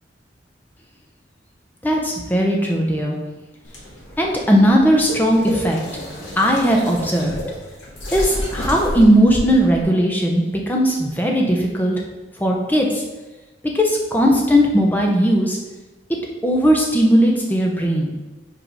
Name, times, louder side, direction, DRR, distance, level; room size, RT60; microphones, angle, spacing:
voice 1, 1.8-3.2 4.2-5.8 6.4-7.3 8.1-12.0 12.4-13.0 13.7-15.6 16.4-18.1, equal, 10° left, 0 dB, 0.8 m, -17 dB
sound 1, 3.6-9.8, equal, 85° left, 1.7 m, -30 dB
5.1 x 4.6 x 4.9 m, 1.1 s
head